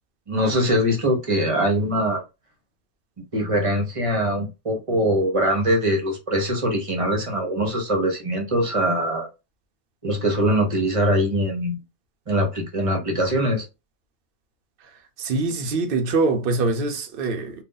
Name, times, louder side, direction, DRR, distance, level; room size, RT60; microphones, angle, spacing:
voice 1, 0.3-2.2 3.3-9.3 10.0-11.8 12.3-13.7, equal, 30° right, 0.9 m, -22 dB
voice 2, 15.2-17.6, right 3 dB, 55° right, 0.8 m, -24 dB
2.6 x 2.3 x 3.7 m
omnidirectional pair, 1.2 m